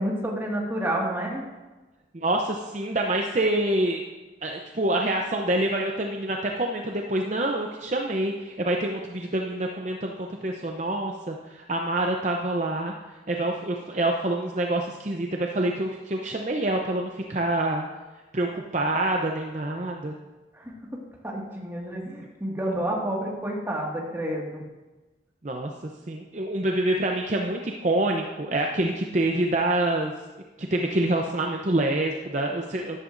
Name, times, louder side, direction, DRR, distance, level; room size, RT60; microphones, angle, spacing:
voice 1, 0.0-1.4 20.6-24.6, right 1 dB, 15° right, -3 dB, 1.9 m, -30 dB
voice 2, 2.1-4.0 4.4-12.9 13.3-17.8 18.3-20.1 25.4-25.7 26.1-30.1 30.6-33.0, right 1 dB, 40° right, 1 dB, 0.7 m, -26 dB
13.5 x 11.0 x 2.6 m, 1.2 s
head